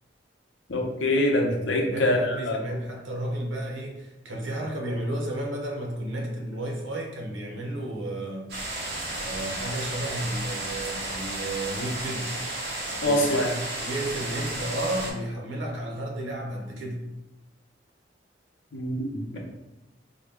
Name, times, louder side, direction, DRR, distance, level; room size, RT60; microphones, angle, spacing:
voice 1, 0.7-2.6 13.0-13.5 18.7-19.4, left 1 dB, 80° left, 0 dB, 0.8 m, -24 dB
voice 2, 1.5-8.5 9.2-12.3 13.0-13.5 13.8-17.0, right 1 dB, 85° right, 0 dB, 0.8 m, -32 dB
sound 1, 8.5-15.1, right 2 dB, 60° right, 0.9 m, -33 dB
3.9 x 2.2 x 3.4 m, 0.98 s
head